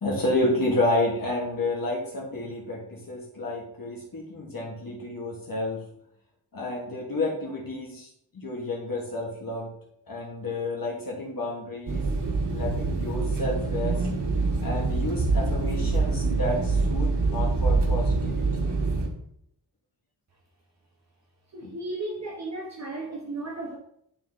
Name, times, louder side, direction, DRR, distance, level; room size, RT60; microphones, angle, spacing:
voice 1, 0.0-5.8 6.5-8.1 8.3-9.7 10.1-12.1 12.5-14.1 14.6-18.7 21.6-21.7, left 2 dB, 55° left, 1.6 m, -30 dB
sound 1, 11.9-19.1, right 3 dB, 80° right, 1.4 m, -25 dB
voice 2, 21.5-23.8, right 2 dB, 40° right, 1.0 m, -34 dB
10.5 x 3.7 x 4.1 m
wide cardioid pair, 140°, 40 cm